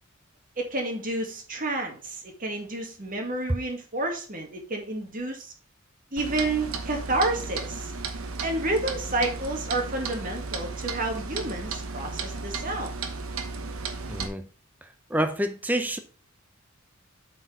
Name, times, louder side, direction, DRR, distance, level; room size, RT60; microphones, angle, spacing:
voice 1, 0.6-5.5 6.1-7.9 8.4-12.9, right 2 dB, 40° right, 2.0 m, -30 dB
Clock, 6.2-14.3, right 4 dB, 75° right, 1.1 m, -34 dB
voice 2, 14.1-14.5 14.8-16.0, right 1 dB, 10° right, 0.6 m, -28 dB
7.8 x 4.5 x 4.5 m
head